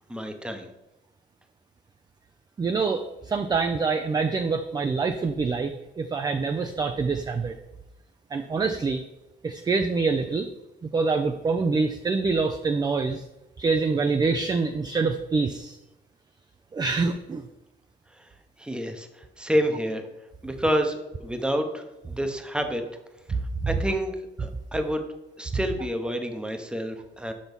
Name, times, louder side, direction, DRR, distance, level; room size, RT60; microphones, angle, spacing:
voice 1, 0.1-0.7 18.2-18.3 18.6-20.0 20.4-22.8 23.7-25.0 25.4-27.3, equal, 5° right, 6 dB, 0.8 m, -28 dB
voice 2, 2.6-7.6 8.3-9.0 9.4-10.5 10.9-13.2 13.6-15.8 16.7-17.5 23.6-23.7, right 4 dB, 20° right, 7 dB, 0.4 m, -25 dB
6.3 x 5.8 x 5.2 m, 0.98 s
cardioid pair, 135°, 19 cm